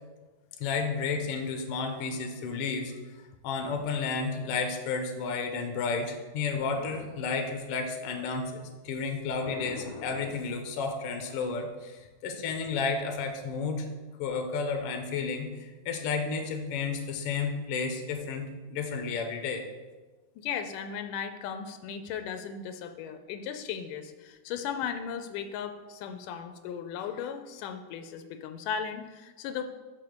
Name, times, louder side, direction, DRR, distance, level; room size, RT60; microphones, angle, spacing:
voice 1, 0.6-2.9 3.4-13.9 14.2-19.6, left 4 dB, 70° left, 4 dB, 1.5 m, -32 dB
voice 2, 20.4-29.6, left 7 dB, 90° left, 8 dB, 2.2 m, -36 dB
6.1 x 5.5 x 6.7 m, 1.3 s
omnidirectional pair, 3.6 m